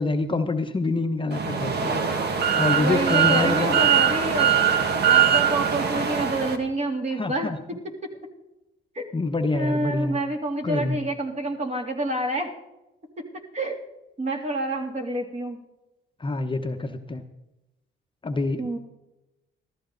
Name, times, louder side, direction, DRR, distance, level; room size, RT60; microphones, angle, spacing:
voice 1, 0.0-2.0 2.6-3.7 7.2-7.6 9.1-10.2 10.6-11.0 16.2-17.2 18.2-18.8, left 3 dB, 25° left, 6 dB, 1.0 m, -26 dB
sound 1, 1.3-6.6, right 7 dB, 55° right, 1.8 m, -22 dB
voice 2, 2.7-4.5 5.1-7.5 8.9-9.1 9.5-12.5 13.5-13.8 14.2-15.6 18.6-18.8, right 1 dB, 35° right, 2 dB, 3.0 m, -28 dB
14.5 x 14.0 x 4.0 m, 0.95 s
cardioid pair, 90°, 20 cm